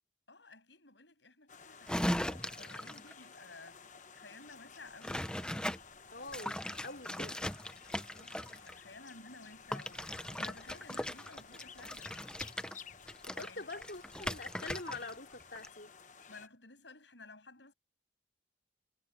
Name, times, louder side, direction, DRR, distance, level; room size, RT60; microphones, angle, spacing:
voice 1, 0.3-5.3 8.1-12.1 13.4-13.7 16.3-17.7, left 3 dB, 75° left, 7.6 m, -54 dB
sound 1, 1.5-16.5, left 6 dB, 40° left, 1.1 m, -55 dB
sound 2, 1.9-3.1 5.0-5.8 6.3-8.7 9.7-15.1 15.4-15.7, left 1 dB, 5° left, 0.8 m, -38 dB
voice 2, 6.1-7.4 13.2-15.9, left 3 dB, 60° left, 3.0 m, -45 dB
head